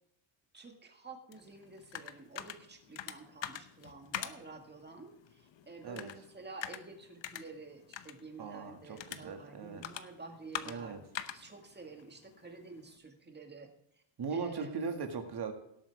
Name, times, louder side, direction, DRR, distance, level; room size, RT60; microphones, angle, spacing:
voice 1, 0.5-11.1 11.3-13.7 14.3-14.8, right 3 dB, 20° right, 4 dB, 1.9 m, -50 dB
sound 1, 1.3-13.0, left 10 dB, 60° left, 0.9 m, -46 dB
voice 2, 8.4-9.8 10.6-11.0 14.2-15.5, right 5 dB, 50° right, 5 dB, 2.1 m, -39 dB
18.0 x 8.3 x 3.5 m, 0.77 s
wide cardioid pair, 160°, 50 cm